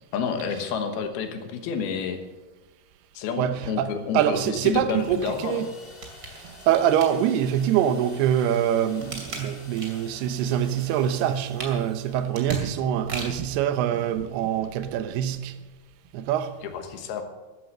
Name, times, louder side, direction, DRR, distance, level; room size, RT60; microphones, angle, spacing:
voice 1, 0.1-2.2 3.1-5.7 16.6-17.2, left 6 dB, 75° left, 3.1 m, -30 dB
voice 2, 3.4-5.7 6.7-15.6 16.1-16.5, right 10 dB, 80° right, 2.8 m, -24 dB
sound 1, 4.9-12.5, left 2 dB, 60° left, 0.6 m, -49 dB
sound 2, 5.8-7.6 8.2-10.2 10.5-13.6 14.1-14.2, right 2 dB, 30° right, 2.4 m, -39 dB
13.5 x 11.0 x 6.6 m
omnidirectional pair, 4.6 m